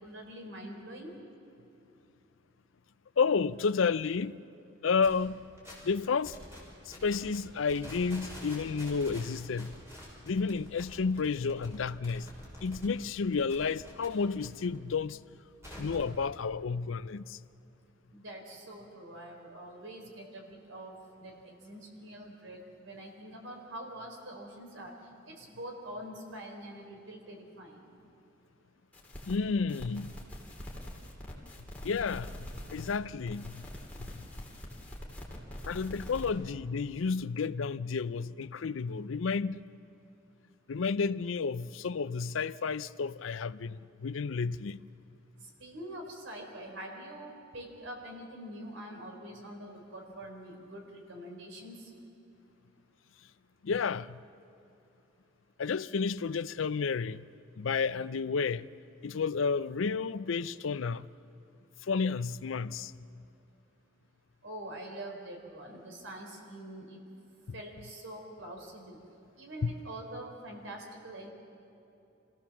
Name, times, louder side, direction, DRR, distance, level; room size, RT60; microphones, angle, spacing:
voice 1, 0.0-1.1 18.1-20.9 21.2-22.6 22.8-24.9 25.3-27.7 45.6-51.7 64.4-67.0 67.5-68.9 69.4-71.3, right 1 dB, 75° right, 4.1 m, -45 dB
voice 2, 3.2-4.4 4.8-5.5 5.8-6.4 6.9-9.7 10.3-12.3 12.6-15.2 15.8-17.4 29.3-30.1 31.8-33.6 34.0-34.2 35.7-39.7 40.7-44.8 53.6-54.2 55.6-57.2 57.6-58.7 59.0-61.1 61.8-62.9 67.5-67.6 69.6-69.7, left 5 dB, 80° left, 0.5 m, -31 dB
sound 1, 5.0-5.2 5.6-5.9 6.2-6.6 6.9-7.4 7.6-12.9 13.2-14.5 14.7-16.1, equal, 15° right, 6.4 m, -47 dB
sound 2, 28.9-29.4 29.7-33.0 33.2-36.3, left 1 dB, 10° left, 3.1 m, -44 dB
26.5 x 16.5 x 7.2 m
head